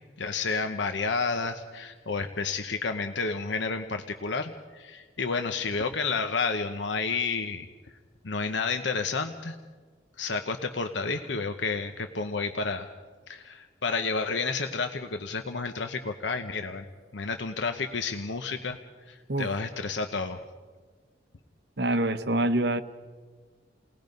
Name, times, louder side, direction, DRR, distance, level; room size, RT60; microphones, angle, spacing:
voice 1, 0.2-7.7 8.2-9.6 10.2-12.9 13.3-16.8 17.1-18.8 19.1-20.4, left 4 dB, 80° left, 6 dB, 1.0 m, -30 dB
voice 2, 21.8-22.8, right 1 dB, 60° right, 11 dB, 1.0 m, -25 dB
30.0 x 19.0 x 5.3 m, 1.5 s
head